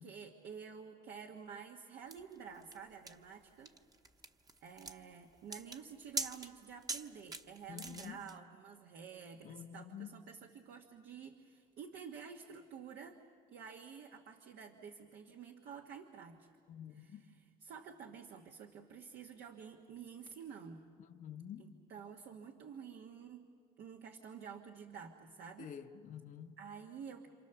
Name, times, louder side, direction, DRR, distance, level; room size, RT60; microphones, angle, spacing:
voice 1, 0.0-3.7 4.6-13.2 13.5-16.5 17.0-17.2 17.6-20.8 21.6-23.4 23.8-25.7 26.6-27.3, right 6 dB, 75° right, 1.5 m, -50 dB
sound 1, 2.1-8.4, right 3 dB, 20° right, 1.0 m, -44 dB
voice 2, 7.7-8.3 9.4-10.1 16.7-17.3 21.0-21.8 25.6-26.6, left 8 dB, 50° left, 1.0 m, -49 dB
28.5 x 27.0 x 7.0 m
cardioid pair, 110°, 17 cm